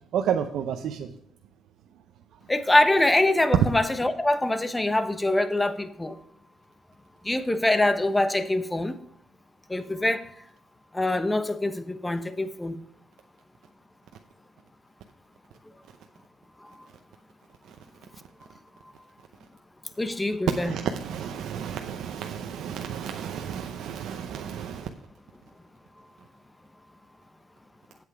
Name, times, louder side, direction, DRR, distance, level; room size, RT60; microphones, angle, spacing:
voice 1, 0.1-1.1 20.5-24.9, right 8 dB, 80° right, 5 dB, 0.7 m, -31 dB
voice 2, 2.5-6.2 7.2-8.9 9.7-10.3 10.9-12.8 20.0-20.7, left 1 dB, 15° left, 11 dB, 1.0 m, -24 dB
8.5 x 7.9 x 4.8 m, 0.72 s
cardioid pair, 90°, 0 cm